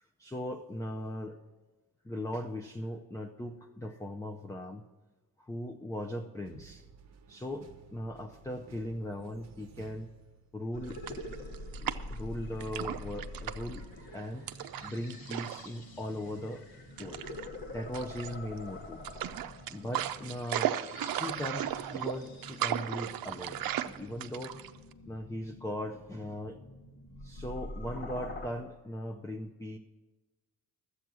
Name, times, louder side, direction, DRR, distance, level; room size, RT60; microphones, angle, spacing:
voice 1, 0.2-1.4 2.0-4.8 5.4-6.9 7.3-10.1 10.5-11.0 11.8-14.5 14.8-16.7 17.0-19.0 19.7-20.8 21.0-24.6 25.1-26.6 27.2-29.8, left 1 dB, 10° left, 5 dB, 0.6 m, -39 dB
sound 1, 6.4-10.9, right 6 dB, 45° right, 0.9 m, -55 dB
sound 2, 10.7-28.5, left 1 dB, 75° left, 1.9 m, -46 dB
sound 3, 10.9-12.2 12.6-13.8 14.5-15.7 15.9-16.1 17.0-17.5 17.9-18.6 19.0-24.9, right 11 dB, 70° right, 0.6 m, -35 dB
12.5 x 8.2 x 6.2 m, 1.2 s
cardioid pair, 100°, 37 cm